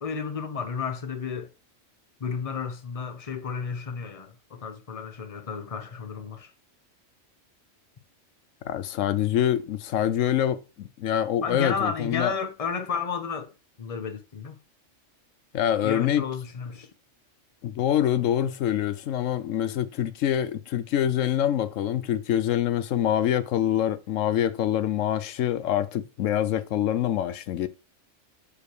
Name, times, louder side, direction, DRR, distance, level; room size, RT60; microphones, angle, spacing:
voice 1, 0.0-1.5 2.2-6.5 11.4-13.5 13.8-14.6 15.8-16.9, left 6 dB, 30° left, 1.0 m, -32 dB
voice 2, 8.7-12.4 15.5-16.2 17.6-27.7, left 10 dB, 90° left, 1.0 m, -25 dB
6.8 x 5.1 x 4.8 m
omnidirectional pair, 1.3 m